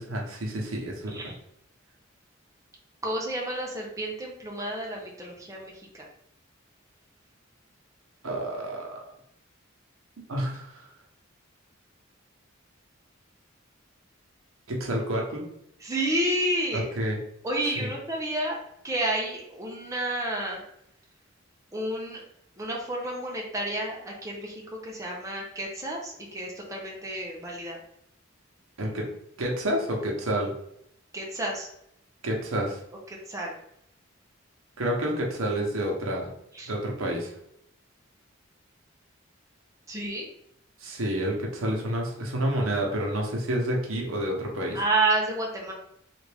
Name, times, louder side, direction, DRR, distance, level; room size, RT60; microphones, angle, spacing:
voice 1, 0.0-1.3 8.2-9.0 10.3-10.9 14.7-15.5 16.7-17.2 17.8-17.9 28.8-29.1 29.4-30.5 32.2-32.8 34.8-36.3 36.7-37.3 40.8-44.8, right 1 dB, 85° right, -1 dB, 0.9 m, -29 dB
voice 2, 3.0-6.0 15.8-16.9 17.4-18.6 18.8-20.6 21.7-22.2 22.6-27.8 31.1-31.7 33.3-33.5 36.5-36.7 39.9-40.3 44.7-45.7, right 1 dB, 15° right, -2 dB, 0.6 m, -30 dB
3.3 x 2.5 x 3.4 m, 0.75 s
head